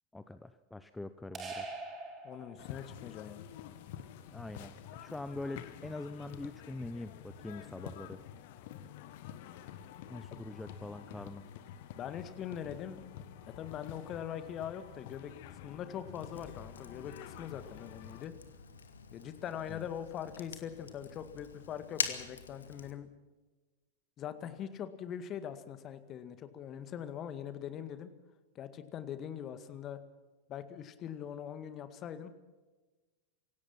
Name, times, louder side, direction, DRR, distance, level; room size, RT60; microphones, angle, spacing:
voice 1, 0.1-1.7 4.3-8.2 10.1-11.4 19.7-19.8, left 2 dB, 5° left, 12 dB, 0.8 m, -43 dB
sound 1, 1.3-3.0, right 3 dB, 25° right, 4.3 m, -43 dB
voice 2, 2.2-3.5 11.9-13.0 13.6-15.3 15.6-18.3 19.1-23.1 24.2-28.1 28.6-30.0 30.5-32.3, left 9 dB, 30° left, 11 dB, 2.0 m, -42 dB
sound 2, 2.6-18.3, left 10 dB, 50° left, 1.6 m, -49 dB
Fire, 16.1-22.9, left 6 dB, 70° left, 1.9 m, -44 dB
25.5 x 17.0 x 5.9 m, 1.2 s
figure-of-eight pair, 90°, 0 cm